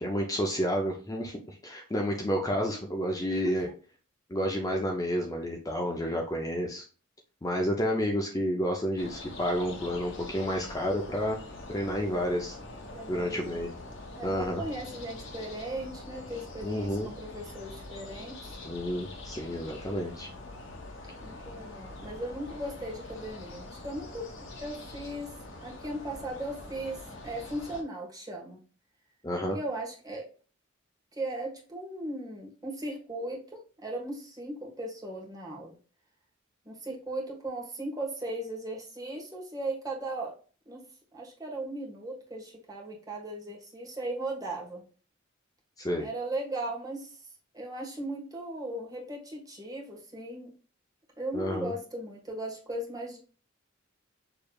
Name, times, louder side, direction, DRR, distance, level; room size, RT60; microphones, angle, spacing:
voice 1, 0.0-3.7 4.3-6.9 7.4-11.4 11.7-12.6 13.1-13.7 14.2-14.6 16.6-17.1 18.6-20.3 29.2-29.6 45.8-46.1 51.3-51.7, equal, 15° left, 1 dB, 0.6 m, -30 dB
voice 2, 3.3-3.6 12.9-13.6 14.2-18.6 21.2-24.3 24.6-25.3 25.6-28.6 29.5-30.2 31.1-35.8 36.6-40.4 40.6-40.8 41.1-44.8 46.0-47.3 47.5-50.5 51.2-53.2, right 1 dB, 20° right, -3 dB, 1.5 m, -37 dB
sound 1, 9.0-27.8, left 2 dB, 65° left, 1.2 m, -44 dB
6.8 x 3.3 x 2.3 m, 0.38 s
head